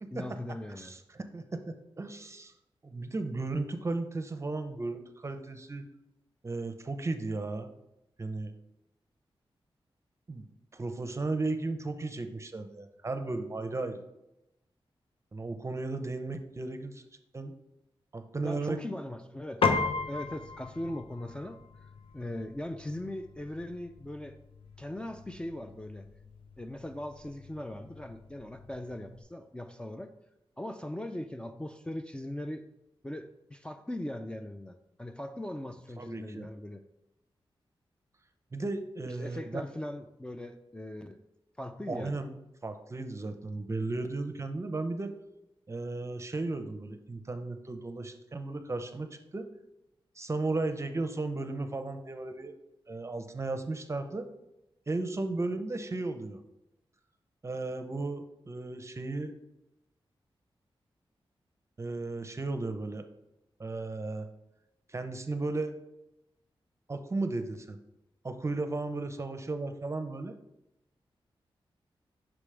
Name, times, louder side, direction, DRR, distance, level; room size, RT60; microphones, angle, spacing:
voice 1, 0.1-1.0 18.4-19.6 20.1-24.4 24.8-26.1 26.6-30.1 30.6-32.6 33.0-36.8 39.1-41.2 41.6-42.2, left 1 dB, 10° left, 5 dB, 0.3 m, -40 dB
voice 2, 0.7-2.5 2.8-5.9 6.4-7.7 8.2-8.5 10.3-10.4 10.7-14.0 15.3-17.0 17.3-17.5 18.1-18.8 36.0-36.5 38.5-39.6 41.9-42.3 42.6-45.1 45.7-49.5 50.2-52.5 52.9-54.3 54.9-56.4 57.4-59.3 61.8-63.0 63.6-64.3 64.9-65.8 66.9-67.8 68.2-70.3, right 3 dB, 30° right, 8 dB, 0.6 m, -35 dB
Piano, 19.6-29.2, left 4 dB, 75° left, 0.7 m, -37 dB
6.0 x 4.9 x 3.3 m, 0.89 s
cardioid pair, 75°, 10 cm